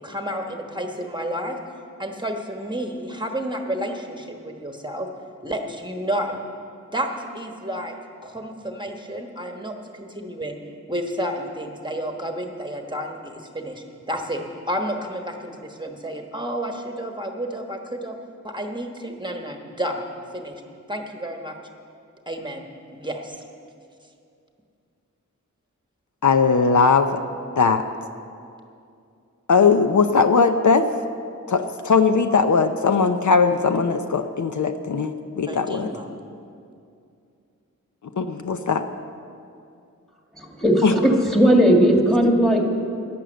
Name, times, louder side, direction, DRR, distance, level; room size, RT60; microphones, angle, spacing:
voice 1, 0.0-1.6 2.0-5.1 5.4-6.4 6.9-7.9 8.2-10.6 10.9-18.1 18.4-20.1 20.3-20.5 20.9-21.6 22.3-23.4 35.5-36.1, equal, 15° right, 3 dB, 1.2 m, -31 dB
voice 2, 26.2-27.2 27.6-27.9 29.5-30.9 31.5-35.9 38.2-38.8 40.8-40.9, left 5 dB, 70° left, 8 dB, 0.7 m, -19 dB
voice 3, 40.3-42.7, equal, ahead, 1 dB, 2.0 m, -17 dB
11.5 x 10.5 x 7.9 m, 2.5 s
wide cardioid pair, 75°, 31 cm